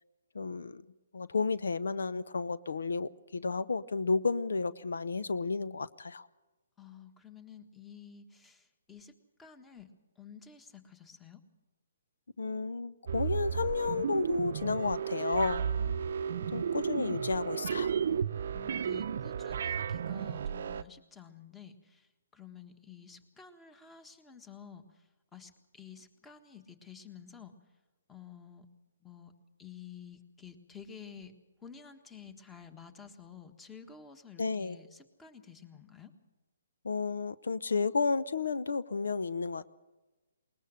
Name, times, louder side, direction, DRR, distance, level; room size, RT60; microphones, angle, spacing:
voice 1, 0.3-0.8 1.1-6.3 12.4-15.6 16.5-17.9 34.4-34.8 36.8-39.7, left 4 dB, 80° left, 15 dB, 0.7 m, -32 dB
voice 2, 6.8-9.1 9.4-9.9 10.2-11.4 15.8-16.7 18.5-27.5 28.1-28.7 29.0-29.3 29.6-31.3 31.6-36.1, left 7 dB, 10° left, 10 dB, 1.5 m, -51 dB
sound 1, 13.1-20.8, right 7 dB, 60° right, 0.6 m, -33 dB
21.0 x 20.0 x 6.5 m, 1.1 s
hypercardioid pair, 150°, 0 cm